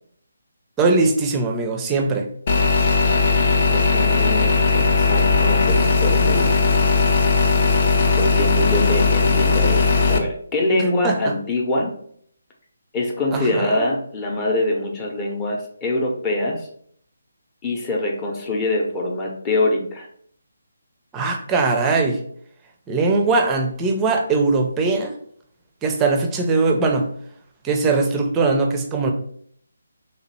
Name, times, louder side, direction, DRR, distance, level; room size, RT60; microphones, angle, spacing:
voice 1, 0.8-2.3 11.0-11.3 13.3-13.9 21.1-22.2 22.9-25.1 25.8-27.1 27.6-29.1, right 3 dB, 15° right, 3 dB, 0.5 m, -20 dB
sound 1, 2.5-10.2, left 4 dB, 40° left, 0.5 m, -18 dB
voice 2, 3.0-6.5 8.2-11.9 12.9-16.7 17.6-20.1, left 2 dB, 20° left, -1 dB, 0.8 m, -24 dB
3.3 x 2.9 x 4.2 m, 0.63 s
figure-of-eight pair, 150°, 0 cm